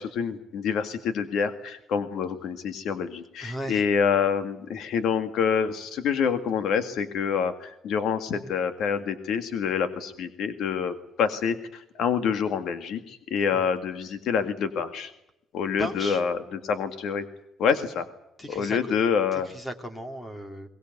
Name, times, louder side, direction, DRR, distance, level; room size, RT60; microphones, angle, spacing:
voice 1, 0.0-15.1 15.5-17.2 17.6-18.1 18.5-19.5, left 6 dB, 65° left, 9 dB, 1.9 m, -27 dB
voice 2, 3.4-3.8 13.5-13.6 15.8-16.2 18.4-18.9 19.3-20.7, right 1 dB, 15° left, 7 dB, 2.9 m, -36 dB
23.0 x 19.5 x 9.3 m, 0.83 s
cardioid pair, 135°, 0 cm